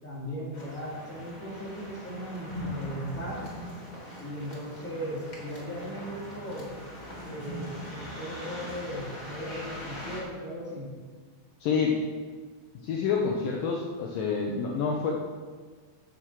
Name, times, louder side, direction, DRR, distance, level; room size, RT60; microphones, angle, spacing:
voice 1, 0.0-3.5 4.2-6.7 7.2-10.9, equal, 5° left, -8 dB, 3.1 m, -37 dB
sound 1, 0.5-10.2, left 1 dB, 30° left, 0.8 m, -41 dB
voice 2, 11.6-12.0 12.8-15.1, left 5 dB, 85° left, -1 dB, 1.9 m, -27 dB
9.6 x 8.2 x 6.5 m, 1.5 s
omnidirectional pair, 5.2 m